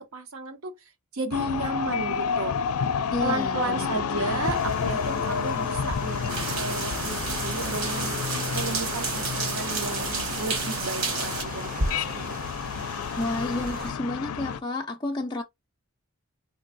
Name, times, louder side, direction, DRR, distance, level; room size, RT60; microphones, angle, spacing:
voice 1, 0.1-0.8 1.1-2.6 3.2-8.2 8.5-12.4, right 3 dB, 80° right, 0.8 m, -33 dB
sound 1, 1.3-14.6, left 6 dB, 90° left, 0.4 m, -30 dB
voice 2, 3.1-3.9 4.2-4.4 13.2-15.4, left 2 dB, 20° left, 0.3 m, -31 dB
sound 2, 4.4-13.9, right 1 dB, 40° right, 0.6 m, -37 dB
sound 3, 6.3-11.4, right 4 dB, 60° right, 1.3 m, -31 dB
3.7 x 2.5 x 2.5 m
head